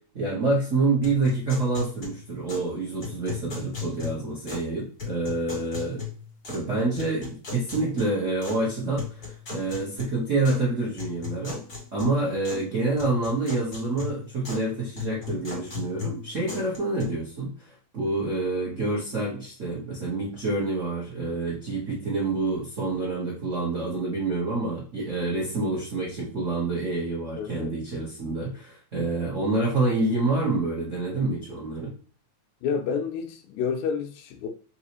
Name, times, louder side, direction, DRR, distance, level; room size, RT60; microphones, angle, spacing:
voice 1, 0.1-6.0 6.5-11.6 11.9-31.9, right 2 dB, 85° right, 0.6 m, -27 dB
sound 1, 1.0-2.7 3.0-4.7 5.0-6.7 7.0-8.6 9.0-10.6 11.0-12.7 13.0-14.7 15.0-17.0, left 6 dB, 35° left, 2.5 m, -37 dB
voice 2, 27.4-27.8 32.6-34.5, left 6 dB, 80° left, 1.9 m, -29 dB
4.7 x 2.9 x 3.0 m
omnidirectional pair, 3.3 m